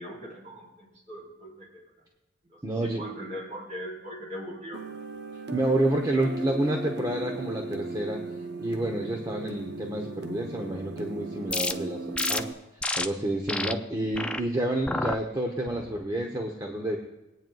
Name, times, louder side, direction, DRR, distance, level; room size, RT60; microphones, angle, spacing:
voice 1, 0.0-1.8 2.5-4.8, equal, 40° right, -5 dB, 4.3 m, -40 dB
voice 2, 2.6-3.0 5.5-8.2 8.6-12.5 13.0-17.0, right 1 dB, 20° right, 2 dB, 0.9 m, -29 dB
sound 1, 4.7-12.5, right 3 dB, 60° right, 0.8 m, -37 dB
sound 2, 11.5-11.7 12.2-12.4 12.8-13.1 13.5-13.7 14.1-14.4 14.9-15.2 15.7-16.0, left 2 dB, 5° left, 0.3 m, -29 dB
21.0 x 9.1 x 2.3 m, 1.0 s
head